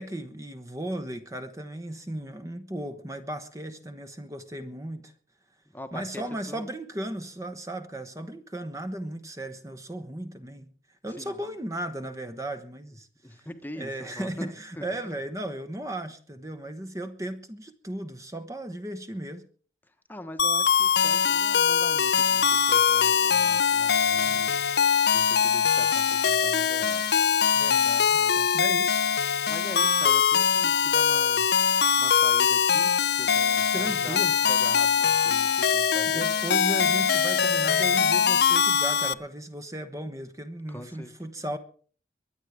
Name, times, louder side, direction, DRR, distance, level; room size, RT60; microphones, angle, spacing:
voice 1, 0.0-5.1 5.9-10.7 11.0-13.5 13.8-19.4 24.1-24.4 27.5-29.1 33.7-34.4 36.1-41.6, right 1 dB, 20° right, 8 dB, 1.0 m, -36 dB
voice 2, 5.7-6.7 11.1-11.4 13.2-15.2 20.1-24.6 25.1-27.1 29.5-36.3 40.7-41.1, left 1 dB, 10° left, 7 dB, 1.1 m, -43 dB
sound 1, 20.4-39.1, left 7 dB, 75° left, 0.7 m, -22 dB
23.0 x 9.1 x 4.9 m, 0.43 s
head